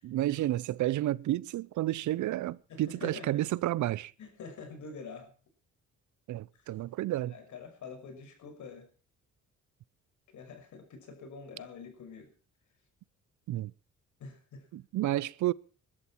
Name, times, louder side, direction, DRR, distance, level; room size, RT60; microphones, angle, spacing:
voice 1, 0.0-4.1 6.3-7.3 13.5-13.7 14.7-15.5, right 15 dB, 75° right, 0.7 m, -31 dB
voice 2, 2.7-3.4 4.2-5.3 7.3-8.9 10.3-12.3 14.2-14.7, left 5 dB, 70° left, 6.0 m, -46 dB
21.0 x 12.5 x 4.5 m
cardioid pair, 90°, 30 cm